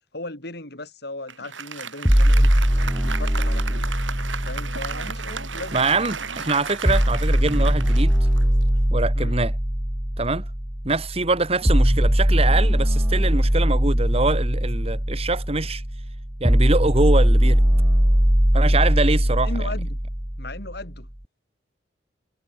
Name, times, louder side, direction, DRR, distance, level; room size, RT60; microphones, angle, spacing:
voice 1, 0.1-2.5 3.0-3.9 4.4-6.1 9.1-9.4 19.4-20.0 20.4-21.1, left 2 dB, 55° left, 5.1 m, -37 dB
Applause, 1.3-8.9, right 6 dB, 85° right, 8.0 m, -34 dB
sound 1, 2.0-6.0 6.8-20.9, equal, 5° right, 0.7 m, -20 dB
voice 2, 5.7-8.2 8.9-9.5 10.2-10.5 10.8-15.8 16.4-17.6 18.5-19.7, right 3 dB, 30° right, 1.6 m, -24 dB
head